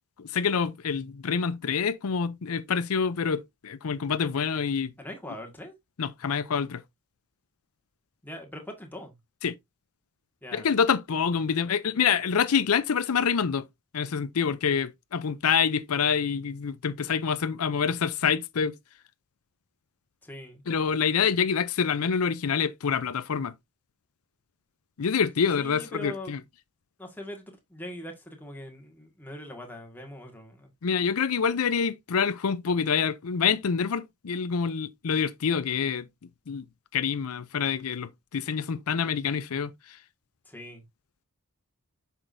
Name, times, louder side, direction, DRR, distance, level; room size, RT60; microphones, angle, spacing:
voice 1, 0.2-4.9 6.0-6.8 9.4-9.5 10.5-13.7 13.9-18.7 20.7-23.5 25.0-26.4 30.8-36.1 36.5-36.6 36.9-40.0, left 6 dB, 80° left, 0.5 m, -26 dB
voice 2, 5.0-5.7 8.2-9.1 10.4-10.7 20.2-20.6 25.6-26.4 27.0-30.7 40.5-40.8, left 1 dB, 10° left, 1.7 m, -41 dB
7.8 x 5.9 x 2.6 m
head